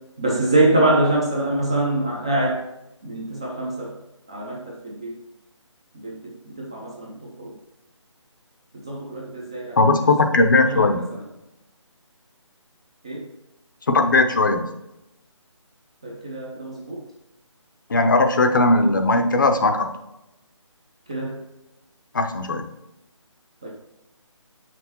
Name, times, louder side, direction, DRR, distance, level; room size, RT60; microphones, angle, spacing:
voice 1, 0.2-2.6 3.0-3.9 4.3-5.1 6.0-7.5 8.9-9.8 10.7-11.0 13.0-13.3 16.0-17.0 21.1-21.4 23.6-23.7, right 2 dB, 10° right, -3 dB, 0.4 m, -24 dB
voice 2, 9.8-11.1 13.9-14.7 17.9-19.9 22.1-22.7, left 2 dB, 40° left, 6 dB, 0.6 m, -18 dB
6.8 x 6.0 x 2.9 m, 0.94 s
figure-of-eight pair, 160°, 16 cm